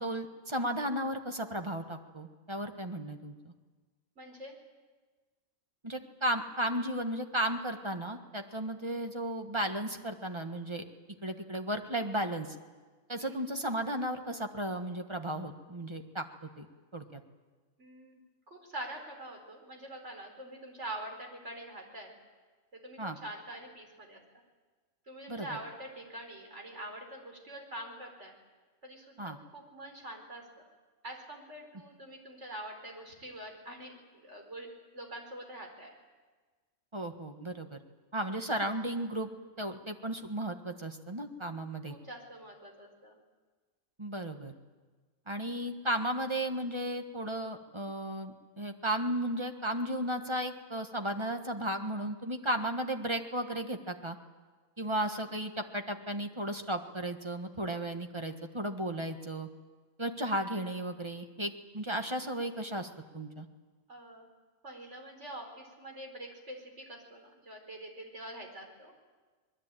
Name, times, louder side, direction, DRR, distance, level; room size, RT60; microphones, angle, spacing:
voice 1, 0.0-3.5 5.8-10.8 11.2-12.5 13.1-16.2 16.6-16.7 16.9-17.2 23.0-23.2 25.3-25.5 29.2-29.4 36.9-37.8 38.1-39.3 39.6-41.9 44.0-44.5 45.3-54.2 54.8-59.5 60.0-62.9 63.1-63.5, right 1 dB, 20° right, 5 dB, 1.4 m, -34 dB
voice 2, 4.2-4.6 13.2-13.3 17.8-18.2 18.5-22.2 22.7-24.2 25.1-28.3 28.8-30.7 31.0-35.9 41.9-43.2 63.9-64.3 64.6-68.9, right 1 dB, 60° right, 2 dB, 4.8 m, -45 dB
24.5 x 21.0 x 9.0 m, 1.4 s
omnidirectional pair, 1.4 m